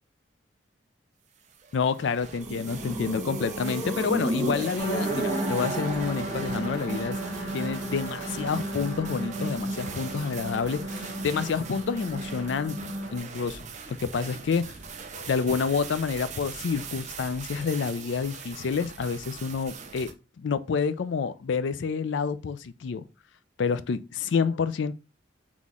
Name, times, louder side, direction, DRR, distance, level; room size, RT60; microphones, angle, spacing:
sound 1, 1.4-20.1, right 6 dB, 40° right, 0.6 m, -42 dB
voice 1, 1.7-7.2 7.5-13.6 13.9-14.7 15.1-20.1 20.4-23.1 23.6-24.9, left 5 dB, 70° left, 0.4 m, -28 dB
sound 2, 2.3-7.4, right 1 dB, 5° right, 1.0 m, -33 dB
sound 3, 4.8-13.2, right 1 dB, 20° left, 1.4 m, -34 dB
4.1 x 3.0 x 3.6 m
head